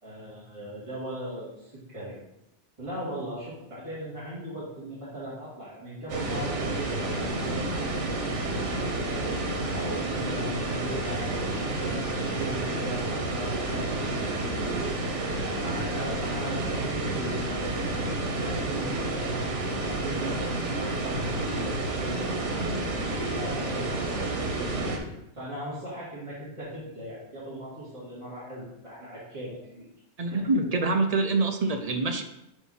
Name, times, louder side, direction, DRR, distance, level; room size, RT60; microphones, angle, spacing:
voice 1, 0.0-2.2 2.8-9.2 9.7-13.8 14.4-15.0 15.6-17.7 18.4-24.4 25.3-29.8 30.2-30.4 31.3-31.4, equal, 25° right, -10 dB, 2.3 m, -39 dB
sound 1, 6.1-25.0, right 2 dB, 85° right, 1.4 m, -30 dB
voice 2, 30.2-32.2, right 3 dB, 45° right, 6 dB, 0.5 m, -25 dB
7.9 x 3.0 x 5.5 m, 0.86 s
omnidirectional pair, 1.2 m